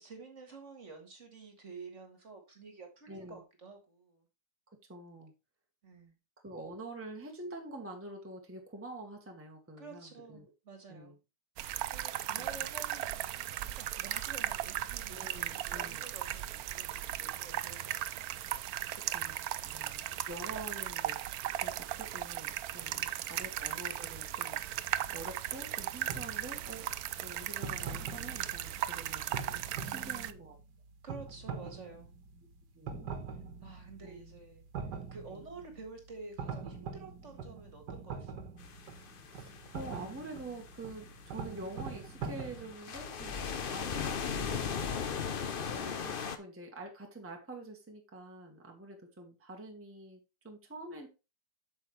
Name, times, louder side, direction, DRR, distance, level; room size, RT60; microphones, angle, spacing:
voice 1, 0.0-4.2 5.8-6.2 9.8-11.2 11.8-18.3 22.8-23.4 29.8-30.3 31.0-32.1 33.6-34.7 35.1-38.5, right 4 dB, 45° right, 1.9 m, -50 dB
voice 2, 3.1-3.4 4.9-5.3 6.4-10.5 10.9-11.2 12.4-12.5 15.1-16.0 19.1-19.4 19.6-21.2 21.5-24.9 25.1-26.9 27.2-29.4 29.8-30.5 32.4-32.5 32.7-33.1 34.0-34.4 35.3-35.4 39.3-44.9 45.7-50.2 50.4-51.1, right 2 dB, 10° right, 1.3 m, -46 dB
sound 1, 11.6-30.3, right 13 dB, 70° right, 1.0 m, -37 dB
sound 2, 25.0-42.7, right 5 dB, 90° right, 1.8 m, -44 dB
sound 3, 38.6-46.4, left 6 dB, 50° left, 0.7 m, -38 dB
8.2 x 6.3 x 3.2 m
omnidirectional pair, 1.8 m